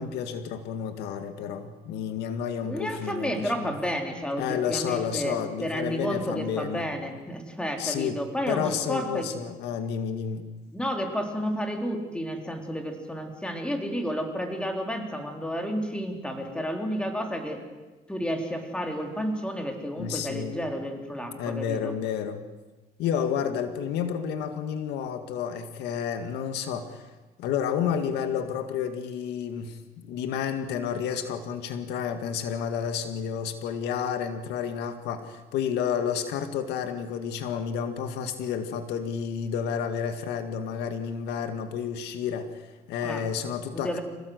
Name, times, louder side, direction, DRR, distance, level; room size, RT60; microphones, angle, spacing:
voice 1, 0.0-3.7 4.4-6.8 7.8-8.2 8.5-10.5 20.0-20.6 21.4-22.4 23.0-27.1 27.4-44.0, left 7 dB, 85° left, 8 dB, 2.0 m, -30 dB
voice 2, 2.6-9.3 10.7-17.6 18.1-21.9 43.0-43.2 43.7-44.0, equal, 5° left, 3 dB, 3.9 m, -31 dB
27.0 x 18.0 x 8.1 m, 1.2 s
cardioid pair, 110°, 17 cm